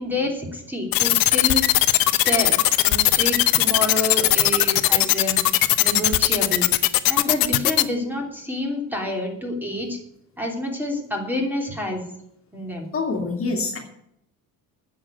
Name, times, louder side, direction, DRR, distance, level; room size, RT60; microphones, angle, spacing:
voice 1, 0.0-1.6 2.2-5.4 5.8-6.7 7.1-10.0 10.4-12.1 12.5-12.9, left 1 dB, 5° right, 1 dB, 3.0 m, -28 dB
sound 1, 0.9-7.8, left 17 dB, 75° left, 0.9 m, -18 dB
voice 2, 12.9-13.8, left 3 dB, 40° left, 2 dB, 2.3 m, -25 dB
10.0 x 7.1 x 9.1 m, 0.76 s
cardioid pair, 130°, 35 cm